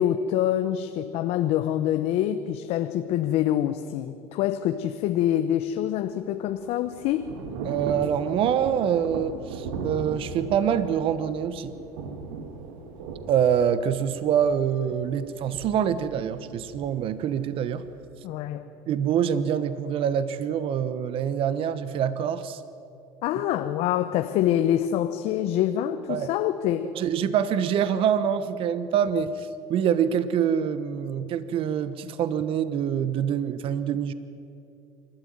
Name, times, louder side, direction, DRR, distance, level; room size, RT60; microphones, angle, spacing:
voice 1, 0.0-7.3 18.2-18.7 23.2-27.0, left 11 dB, 65° left, 0.9 m, -25 dB
Thunder / Rain, 6.1-18.0, right 4 dB, 80° right, 2.2 m, -38 dB
voice 2, 7.6-11.8 13.3-17.8 18.9-22.6 26.1-26.3 26.9-34.1, right 8 dB, 55° right, 1.1 m, -25 dB
27.0 x 13.0 x 9.5 m
supercardioid pair, 90°, 11 cm